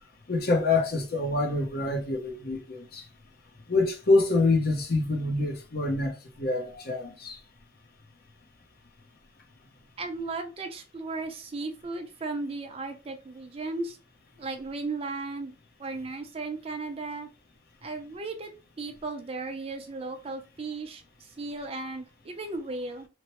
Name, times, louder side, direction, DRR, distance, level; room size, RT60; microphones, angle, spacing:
voice 1, 0.3-3.0 3.7-7.4, left 2 dB, 55° left, 0.7 m, -26 dB
voice 2, 10.0-14.0 14.4-15.5 15.8-17.3 17.8-18.5 18.8-23.1, right 3 dB, 30° right, 0.4 m, -35 dB
3.0 x 2.0 x 2.9 m
head